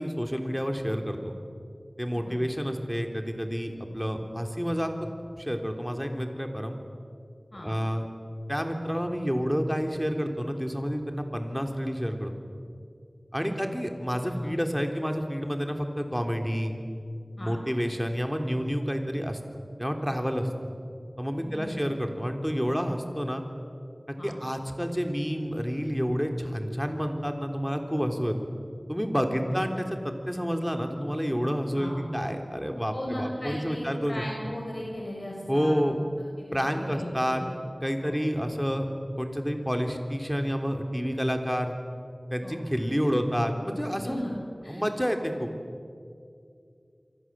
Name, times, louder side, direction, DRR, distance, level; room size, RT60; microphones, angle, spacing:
voice 1, 0.0-1.3 2.0-4.9 5.4-6.8 7.6-8.1 8.5-12.3 13.3-16.7 17.4-19.4 19.8-20.5 21.2-23.4 24.1-28.3 28.9-34.2 35.5-35.9 36.5-37.4 37.8-38.9 39.2-41.7 42.3-44.2 44.7-45.5, equal, ahead, 4 dB, 3.3 m, -29 dB
voice 2, 13.4-13.8 14.2-14.5 17.4-17.5 21.4-21.8 24.2-24.3 29.3-29.6 31.7-32.1 32.9-35.8 36.4-37.1 37.4-37.5 38.0-38.2 42.4-42.6 44.0-44.3 44.6-44.8, left 1 dB, 55° left, -2 dB, 6.5 m, -37 dB
28.5 x 23.5 x 7.5 m, 2.4 s
wide cardioid pair, 45°, 0 cm